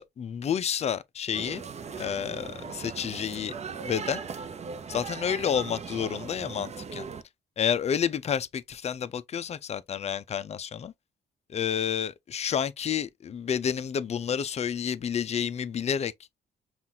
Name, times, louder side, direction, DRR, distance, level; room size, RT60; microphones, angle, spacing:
voice 1, 0.0-1.6 1.9-3.5 3.9-4.2 4.9-7.0 7.6-10.9 11.5-16.1, left 8 dB, 40° left, 0.4 m, -30 dB
sound 1, 1.3-7.2, right 5 dB, 40° right, 0.6 m, -39 dB
5.7 x 2.4 x 2.6 m
cardioid pair, 80°, 18 cm